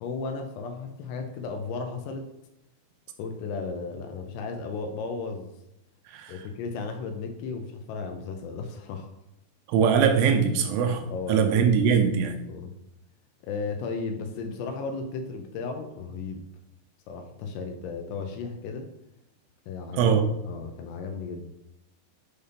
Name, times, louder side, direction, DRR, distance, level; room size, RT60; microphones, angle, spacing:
voice 1, 0.0-2.3 3.2-5.5 6.3-9.1 11.1-11.8 12.5-12.7 13.4-16.4 17.1-18.9 19.7-20.2 20.4-21.5, left 4 dB, 80° left, 4 dB, 2.6 m, -34 dB
voice 2, 9.7-12.4 20.0-20.2, right 7 dB, 90° right, 5 dB, 3.2 m, -22 dB
7.9 x 2.8 x 5.0 m, 0.85 s
omnidirectional pair, 5.4 m